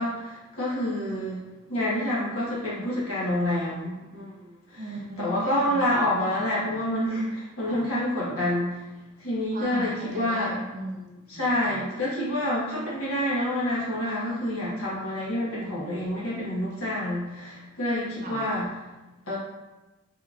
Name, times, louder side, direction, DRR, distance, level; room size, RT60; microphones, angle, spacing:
voice 1, 0.0-1.4 1.7-4.8 5.2-8.8 9.2-10.5 11.3-18.7 19.3-19.4, left 1 dB, 75° left, -7 dB, 1.3 m, -28 dB
voice 2, 4.8-6.2 6.7-6.8 7.7-7.9 9.5-11.8 18.2-18.5, right 1 dB, 35° right, -1 dB, 0.5 m, -38 dB
4.2 x 3.7 x 2.5 m, 1.1 s
head